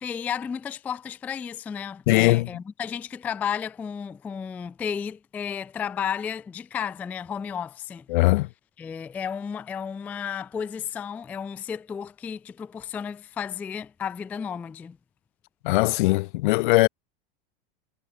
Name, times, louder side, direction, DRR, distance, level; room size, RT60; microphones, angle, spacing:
voice 1, 0.0-8.1 8.8-15.0, left 7 dB, 5° left, 0.3 m, -33 dB
voice 2, 2.1-2.5 8.1-8.5 15.6-16.9, left 21 dB, 55° left, 0.7 m, -20 dB
supercardioid pair, 165°, 30 cm